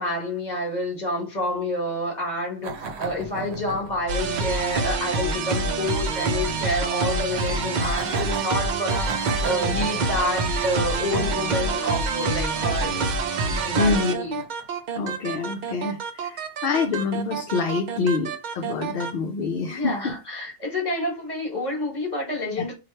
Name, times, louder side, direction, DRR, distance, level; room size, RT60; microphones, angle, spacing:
voice 1, 0.0-13.0 13.4-14.4 19.6-22.7, left 1 dB, 40° left, 1.5 m, -28 dB
sound 1, 2.6-14.8, right 3 dB, 75° right, 0.9 m, -38 dB
sound 2, 4.1-19.1, right 3 dB, 55° right, 0.5 m, -26 dB
voice 2, 13.8-14.1 14.9-20.2 22.6-22.7, left 4 dB, 65° left, 0.7 m, -26 dB
3.0 x 2.4 x 4.2 m
omnidirectional pair, 1.1 m